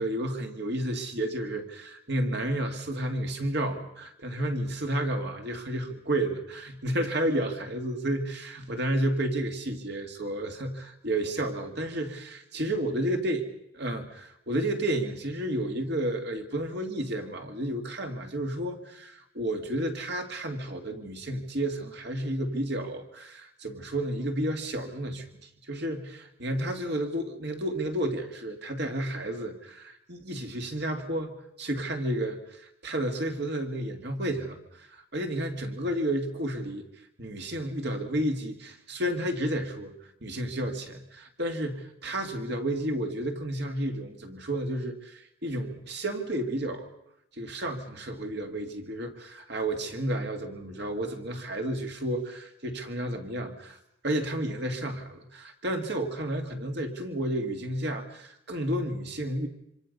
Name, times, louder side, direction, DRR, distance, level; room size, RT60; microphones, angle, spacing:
voice 1, 0.0-13.4 13.7-36.8 37.2-39.9 40.2-46.9 47.3-53.8 54.0-59.5, right 1 dB, 50° right, 4 dB, 2.4 m, -31 dB
26.0 x 26.0 x 5.5 m, 0.80 s
head